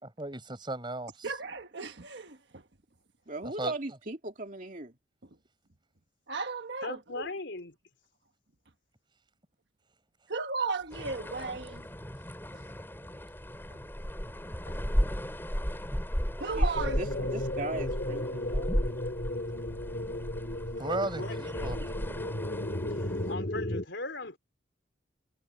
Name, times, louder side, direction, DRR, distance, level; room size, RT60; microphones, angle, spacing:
voice 1, 0.0-1.3 3.6-3.7 20.8-21.8, right 2 dB, 25° right, 4.9 m, -35 dB
voice 2, 1.2-1.9 6.3-7.0 10.3-11.6 16.4-17.3, right 4 dB, 65° right, 1.4 m, -34 dB
voice 3, 3.3-4.9 16.5-18.8, right 2 dB, 45° right, 2.7 m, -38 dB
voice 4, 6.8-7.8 14.6-14.8 21.2-21.9 22.9-24.4, left 2 dB, 75° left, 3.6 m, -39 dB
sound 1, 10.9-23.4, equal, 10° left, 6.3 m, -35 dB
sound 2, 16.7-23.8, left 1 dB, 50° left, 3.4 m, -34 dB
head